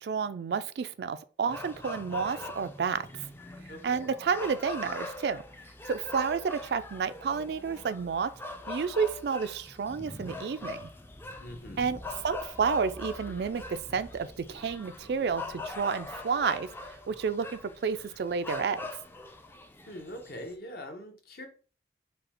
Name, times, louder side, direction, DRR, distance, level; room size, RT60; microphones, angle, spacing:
voice 1, 0.0-3.1 3.8-5.4 5.9-8.3 8.7-10.9 11.8-12.0 12.2-16.7 17.1-19.0, right 6 dB, 60° right, 0.3 m, -30 dB
sound 1, 1.5-20.6, left 2 dB, 10° left, 0.4 m, -42 dB
voice 2, 3.7-4.1 11.4-11.8 19.9-21.5, equal, 55° left, 1.0 m, -43 dB
5.1 x 2.3 x 4.2 m
head